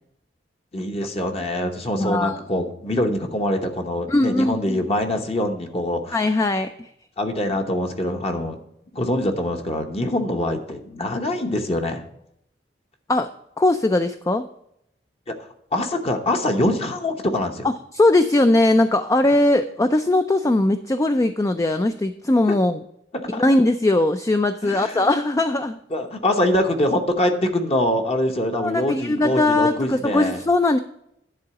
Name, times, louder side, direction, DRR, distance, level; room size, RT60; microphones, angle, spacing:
voice 1, 0.7-6.2 7.2-8.6 8.9-12.0 15.7-17.7 22.5-22.6 23.2-23.4 24.6-25.1 25.9-30.4, left 1 dB, 35° left, 4 dB, 0.9 m, -24 dB
voice 2, 2.0-2.4 4.1-4.8 6.1-6.9 13.1-13.3 13.6-14.5 17.9-22.8 23.3-25.8 28.6-30.8, left 2 dB, 20° left, 9 dB, 0.3 m, -20 dB
10.5 x 3.9 x 6.8 m, 0.76 s
head